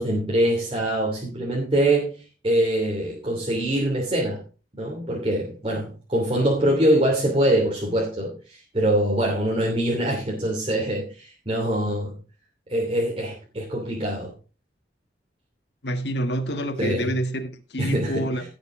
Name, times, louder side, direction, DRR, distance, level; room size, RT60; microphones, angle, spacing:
voice 1, 0.0-4.4 4.8-12.2 12.7-14.3 16.8-17.1 17.8-18.3, right 1 dB, 30° right, 3.0 m, -24 dB
voice 2, 15.8-18.4, right 1 dB, 70° left, 1.7 m, -27 dB
17.0 x 6.7 x 3.8 m
head